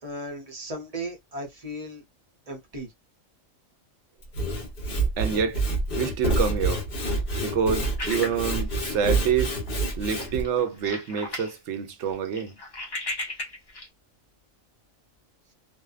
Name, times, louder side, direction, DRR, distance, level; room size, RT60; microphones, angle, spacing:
voice 1, 0.0-2.0 2.5-2.9, right 1 dB, 40° right, 0.6 m, -36 dB
Sawing / Wood, 4.2-10.4, right 2 dB, 45° left, 1.0 m, -27 dB
voice 2, 5.2-5.6 5.9-6.8 7.4-9.5 10.0-12.6, right 7 dB, 70° right, 0.9 m, -27 dB
sound 1, 8.0-9.3 9.7-9.8 10.1-11.5 11.9-13.9, left 2 dB, 30° left, 0.4 m, -36 dB
2.6 x 2.2 x 2.3 m
omnidirectional pair, 1.4 m